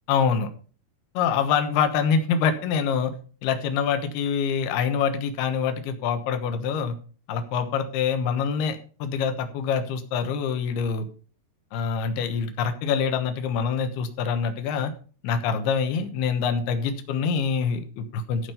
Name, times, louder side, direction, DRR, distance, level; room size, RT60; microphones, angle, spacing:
voice 1, 0.1-0.5 1.1-3.1 3.4-7.0 7.3-11.1 11.7-14.9 15.2-18.5, left 6 dB, 70° left, 7 dB, 2.6 m, -25 dB
15.0 x 5.3 x 5.6 m, 0.39 s
omnidirectional pair, 5.9 m